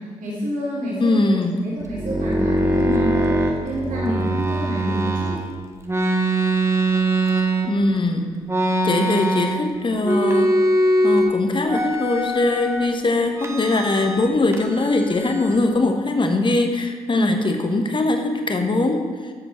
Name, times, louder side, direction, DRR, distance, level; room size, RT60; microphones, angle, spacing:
voice 1, 0.2-1.1 1.6-5.3 17.1-17.3, equal, 50° right, -6 dB, 3.4 m, -28 dB
voice 2, 1.0-1.7 7.7-8.3 8.8-10.5 11.0-19.0, left 2 dB, 25° left, 5 dB, 1.3 m, -21 dB
sound 1, 1.8-5.4 5.9-8.0 8.5-9.7 10.0-11.3 11.7-12.9 13.4-14.3 14.5-15.7, right 1 dB, 15° right, 1.3 m, -22 dB
12.0 x 7.9 x 4.5 m, 1.5 s
figure-of-eight pair, 45°, 18 cm